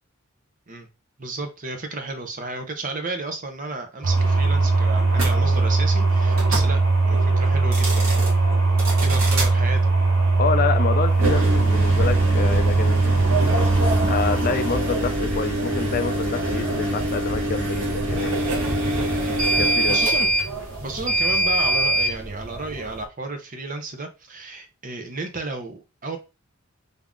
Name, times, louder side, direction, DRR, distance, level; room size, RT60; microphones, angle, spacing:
voice 1, 1.2-6.8 7.1-8.3 9.0-9.9 14.2-14.3 19.2-19.4 19.9-20.3 20.8-26.2, right 2 dB, 40° right, 5 dB, 0.8 m, -33 dB
sound 1, 4.0-23.0, right 3 dB, 70° right, 1.2 m, -22 dB
sound 2, 5.1-5.3 6.3-6.7 7.6-8.3 8.8-9.5 11.1-22.1, right 1 dB, 85° right, 1.7 m, -25 dB
voice 2, 10.4-13.1 14.1-18.4 19.6-20.0, left 5 dB, 45° left, 9 dB, 0.4 m, -27 dB
3.6 x 2.8 x 3.6 m, 0.28 s
head